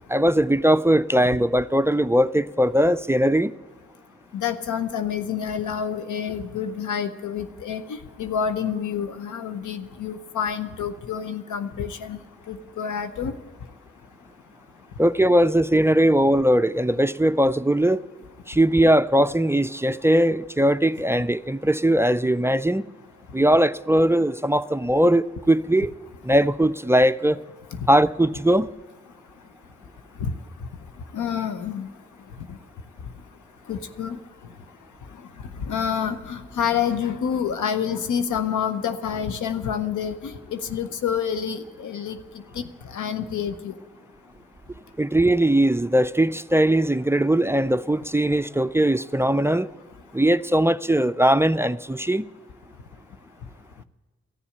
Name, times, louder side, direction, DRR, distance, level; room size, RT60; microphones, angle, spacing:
voice 1, 0.1-3.5 15.0-18.0 18.5-22.8 23.3-25.9 26.2-27.4 27.9-28.7 45.0-49.7 50.1-52.3, right 1 dB, 10° right, 0.3 m, -20 dB
voice 2, 4.3-12.2 12.5-13.3 30.2-30.3 31.1-31.9 33.7-34.2 35.6-42.2 42.5-42.6 42.9-43.7, left 7 dB, 85° left, 0.7 m, -28 dB
14.0 x 7.1 x 9.8 m
cardioid pair, 50°, 29 cm